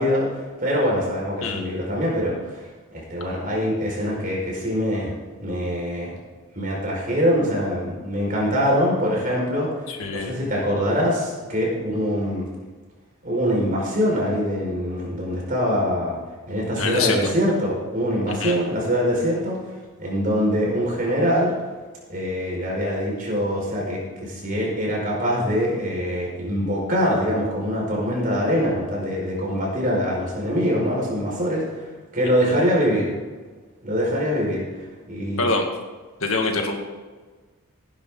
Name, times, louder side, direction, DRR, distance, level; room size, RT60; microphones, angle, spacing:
voice 1, 0.0-2.7 2.9-5.1 5.4-6.1 6.6-9.7 10.1-12.5 13.2-16.2 16.5-19.6 20.0-21.5 22.1-31.8 32.1-33.2 33.8-34.7 35.1-35.5, equal, 40° right, -3 dB, 5.2 m, -23 dB
voice 2, 9.9-10.3 16.8-17.3 18.4-18.6 32.4-32.5 35.4-35.7 36.2-36.8, left 3 dB, 70° left, 2 dB, 2.1 m, -25 dB
17.5 x 11.0 x 3.9 m, 1.4 s
head